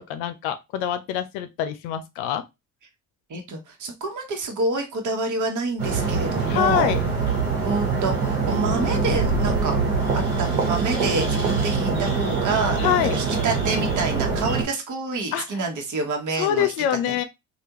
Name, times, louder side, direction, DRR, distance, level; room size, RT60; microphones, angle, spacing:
voice 1, 0.0-2.4 6.5-7.0 12.8-13.2 15.3-15.4 16.4-17.2, left 10 dB, 75° left, 0.6 m, -25 dB
voice 2, 3.3-6.9 7.6-9.8 10.1-12.8 13.1-16.7 17.1-17.2, right 3 dB, 45° right, 1.2 m, -27 dB
sound 1, 5.8-14.6, right 4 dB, 85° right, 1.2 m, -24 dB
3.4 x 2.5 x 2.9 m
hypercardioid pair, 55°, 43 cm